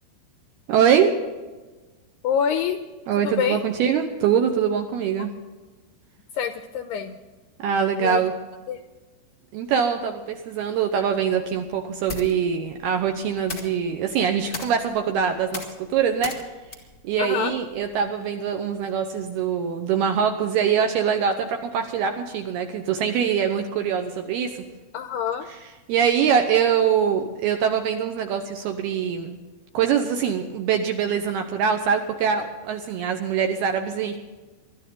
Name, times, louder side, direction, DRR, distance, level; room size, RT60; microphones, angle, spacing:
voice 1, 0.7-1.1 3.1-5.3 7.6-8.3 9.5-16.3 17.0-24.6 25.9-29.4 29.7-34.2, right 7 dB, 75° right, 5 dB, 2.4 m, -23 dB
voice 2, 2.2-2.8 3.2-3.6 5.2-5.3 6.3-7.1 8.0-8.2 8.7-8.8 17.2-17.5 24.9-25.5, left 8 dB, 85° left, 7 dB, 2.4 m, -26 dB
sound 1, 10.9-18.2, left 2 dB, 30° left, 1.2 m, -40 dB
23.0 x 12.5 x 3.8 m, 1.2 s
omnidirectional pair, 5.6 m